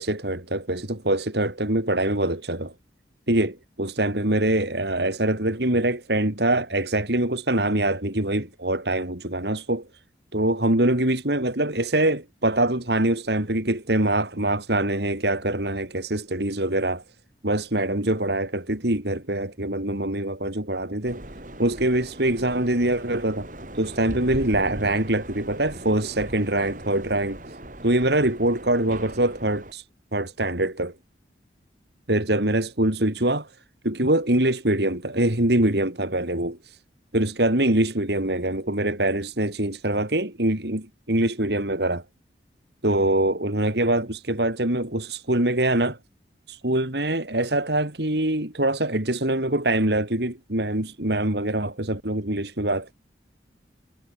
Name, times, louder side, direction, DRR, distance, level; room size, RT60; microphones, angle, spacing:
voice 1, 0.0-2.7 3.3-9.9 10.3-17.0 17.4-21.2 21.6-23.5 23.7-27.6 27.8-29.8 30.1-30.9 32.1-33.5 33.8-36.8 37.1-42.0 42.8-46.0 46.5-52.9, right 1 dB, 65° right, 3.5 m, -24 dB
sound 1, 21.0-29.7, right 1 dB, 45° right, 3.8 m, -39 dB
head